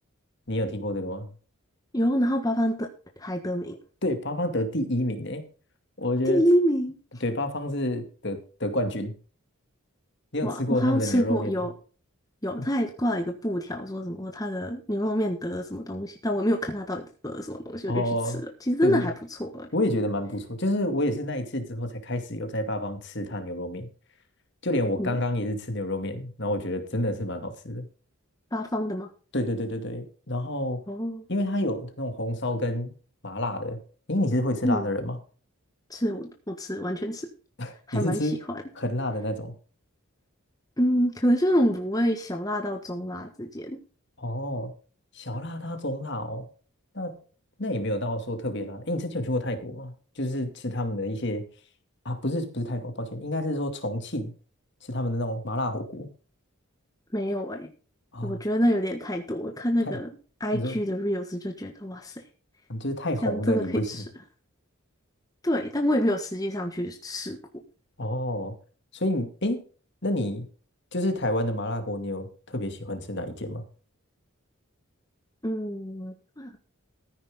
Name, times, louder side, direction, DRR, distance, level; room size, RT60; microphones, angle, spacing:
voice 1, 0.5-1.3 4.0-5.4 6.0-6.4 7.2-9.1 10.3-11.6 17.9-18.4 18.8-19.1 19.7-23.9 24.6-27.9 29.3-30.8 31.3-32.9 33.2-33.8 34.1-35.2 37.6-38.4 38.7-39.5 44.2-44.7 45.1-46.5 46.9-47.2 47.6-51.5 52.0-54.3 54.8-56.1 58.1-58.4 59.8-60.0 60.5-60.8 62.7-63.9 68.0-68.5 68.9-69.6 70.0-70.5 70.9-73.6, left 1 dB, 50° left, 7 dB, 2.4 m, -29 dB
voice 2, 1.9-2.9 3.2-3.8 6.2-7.0 10.4-11.7 12.4-18.0 18.7-19.7 25.0-25.2 28.5-29.1 30.9-31.2 34.6-34.9 35.9-37.3 37.9-38.6 40.8-43.8 57.1-57.7 58.2-60.1 60.4-62.1 63.2-64.0 65.4-67.4 75.4-76.6, equal, 15° left, 3 dB, 1.4 m, -27 dB
14.5 x 9.9 x 3.7 m, 0.38 s
head